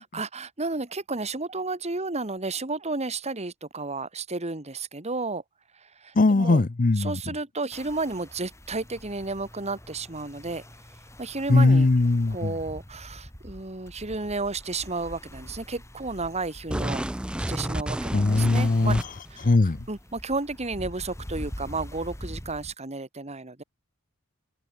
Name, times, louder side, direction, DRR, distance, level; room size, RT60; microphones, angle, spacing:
voice 1, 0.0-5.4 5.7-6.6 7.0-10.6 11.2-11.9 12.3-17.0 17.5-19.0 19.3-19.6 19.9-23.6, right 3 dB, 30° right, 2.0 m, -32 dB
voice 2, 6.2-7.1 11.5-12.5 18.1-19.0 19.4-19.8, left 2 dB, 40° left, 0.6 m, -20 dB
sound 1, 7.7-22.7, equal, 15° left, 5.0 m, -44 dB
sound 2, 16.7-19.4, right 1 dB, 5° right, 0.3 m, -31 dB
head